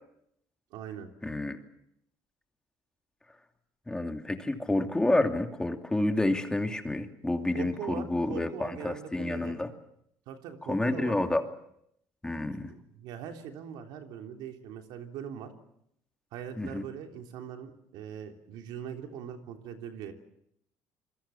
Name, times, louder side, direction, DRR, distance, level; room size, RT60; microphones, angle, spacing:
voice 1, 0.7-1.1 7.5-9.6 10.3-11.2 12.7-15.5 16.3-20.1, right 8 dB, 80° right, 4 dB, 3.3 m, -41 dB
voice 2, 1.2-1.6 3.9-9.7 10.7-11.4 12.2-12.7 16.6-16.8, left 2 dB, 10° left, 5 dB, 2.7 m, -29 dB
26.5 x 22.5 x 7.1 m, 0.75 s
cardioid pair, 100°, 7 cm